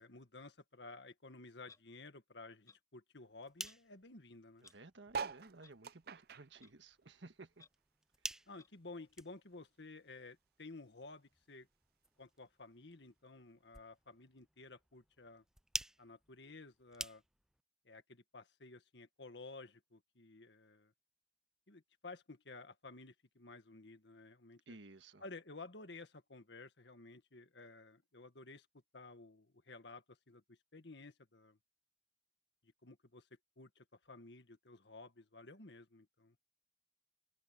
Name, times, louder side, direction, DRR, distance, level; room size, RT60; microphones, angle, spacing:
voice 1, 0.0-4.7 8.5-11.7 12.2-15.4 16.0-17.2 17.9-20.9 21.7-24.8 25.2-28.7 28.9-31.6 32.6-33.3 33.6-36.4, left 3 dB, 70° left, 1.7 m, -54 dB
Clock, 1.7-1.8 2.7-2.8 3.6-3.8 4.6-4.7 5.6-5.7 6.6-6.7 7.6-7.7 8.6-8.7, left 4 dB, 20° left, 4.5 m, -61 dB
sound 1, 3.2-17.6, right 1 dB, 5° right, 0.3 m, -51 dB
voice 2, 4.6-7.6 24.7-25.2, right 2 dB, 80° right, 1.6 m, -56 dB
sound 2, 5.1-7.8 8.2-9.7 10.2-10.3 10.4-10.5 10.7-11.1 11.9-12.0, right 5 dB, 55° right, 0.5 m, -46 dB
open air
head